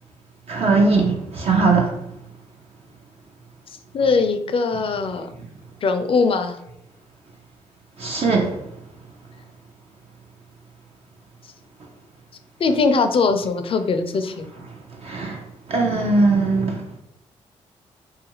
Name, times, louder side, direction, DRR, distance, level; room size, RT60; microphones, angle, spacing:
voice 1, 0.5-1.9 8.0-8.5 15.0-15.4 15.7-16.8, right 3 dB, 55° right, 0.5 m, -19 dB
voice 2, 3.9-5.3 5.8-6.6 12.6-14.5, left 4 dB, 45° left, 0.4 m, -21 dB
2.4 x 2.3 x 3.0 m
supercardioid pair, 50°, 13 cm